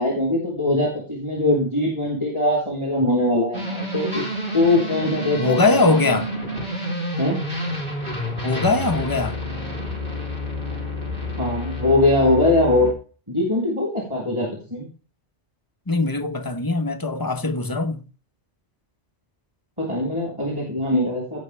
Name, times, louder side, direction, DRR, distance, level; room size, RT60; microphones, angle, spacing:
voice 1, 0.0-4.2 4.5-5.6 7.2-7.4 11.4-12.9 13.3-14.9 19.8-21.4, left 2 dB, 25° right, 3.6 m, -21 dB
sound 1, 3.5-12.9, equal, 50° right, 3.2 m, -29 dB
voice 2, 5.4-6.3 8.4-9.4 15.9-18.0, left 3 dB, 20° left, 0.8 m, -21 dB
17.0 x 6.0 x 3.3 m
omnidirectional pair, 1.2 m